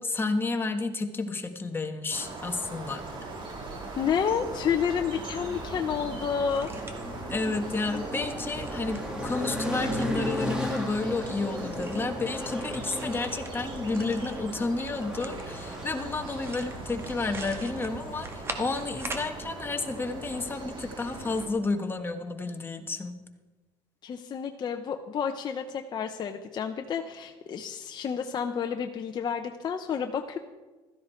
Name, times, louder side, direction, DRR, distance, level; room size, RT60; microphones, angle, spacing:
voice 1, 0.0-3.0 7.3-23.2, left 3 dB, 20° left, 5 dB, 1.5 m, -31 dB
sound 1, 2.1-21.5, right 3 dB, 45° right, 3.6 m, -41 dB
sound 2, 3.3-20.6, equal, 5° right, 2.2 m, -37 dB
voice 2, 4.0-6.7 24.0-30.4, left 7 dB, 40° left, 4 dB, 0.9 m, -30 dB
sound 3, 6.5-19.3, right 2 dB, 25° right, 1.9 m, -45 dB
15.5 x 13.0 x 4.5 m, 1.2 s
cardioid pair, 110°, 11 cm